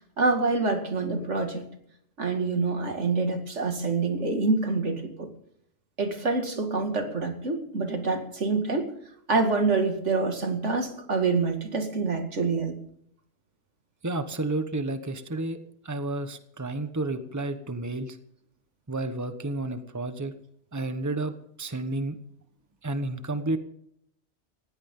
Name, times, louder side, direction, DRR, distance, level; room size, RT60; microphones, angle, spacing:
voice 1, 0.2-1.7 2.2-5.3 6.0-8.9 9.3-12.8, right 3 dB, 85° right, 5 dB, 2.5 m, -26 dB
voice 2, 14.0-15.6 15.8-18.2 18.9-20.3 20.7-21.3 21.6-22.2 22.8-23.6, right 2 dB, 15° right, 9 dB, 1.2 m, -31 dB
19.5 x 16.0 x 3.8 m, 0.70 s
omnidirectional pair, 1.2 m